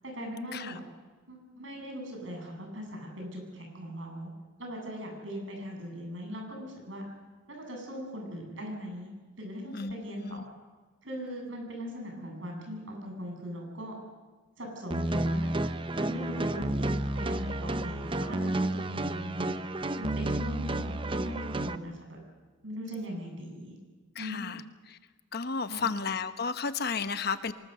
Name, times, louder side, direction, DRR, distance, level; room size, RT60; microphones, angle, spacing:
voice 1, 0.0-0.8 1.3-4.3 4.6-7.1 7.5-9.1 9.4-10.5 11.0-14.0 14.6-15.5 15.9-19.5 20.0-22.2 22.6-23.7 24.1-24.6 25.7-26.0, equal, 80° right, 1 dB, 7.9 m, -40 dB
voice 2, 9.7-10.4 24.1-25.0 25.3-27.5, left 5 dB, 55° left, 11 dB, 1.0 m, -33 dB
sound 1, 14.9-21.8, right 1 dB, 25° right, 0.7 m, -31 dB
24.5 x 20.0 x 6.8 m, 1.4 s
head